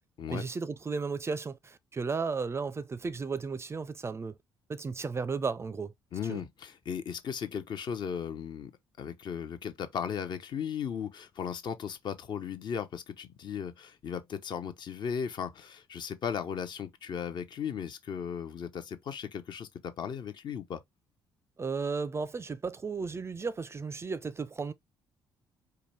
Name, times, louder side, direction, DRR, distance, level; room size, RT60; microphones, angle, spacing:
voice 1, 0.3-4.4 4.7-5.9 6.3-6.4 21.6-24.7, right 4 dB, 25° right, 0.5 m, -34 dB
voice 2, 6.1-8.7 9.0-20.8, left 7 dB, 45° left, 0.7 m, -36 dB
4.8 x 2.2 x 3.3 m
figure-of-eight pair, 45°, 11 cm